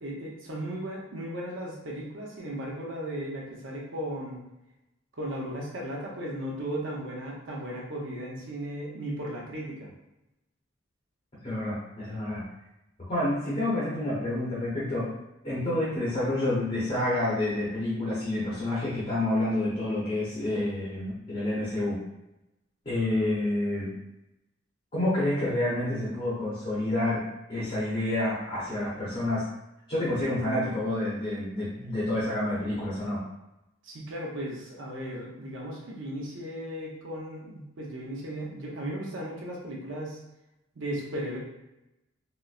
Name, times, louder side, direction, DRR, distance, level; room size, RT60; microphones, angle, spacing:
voice 1, 0.0-4.4 5.1-9.9 33.8-40.2 40.7-41.4, right 1 dB, 75° right, -3 dB, 0.7 m, -36 dB
voice 2, 11.4-12.4 13.0-15.1 15.4-22.0 22.8-23.9 24.9-27.2 27.5-29.4 29.9-33.2, left 1 dB, 30° left, -8 dB, 0.8 m, -28 dB
4.0 x 2.0 x 2.4 m, 0.91 s
head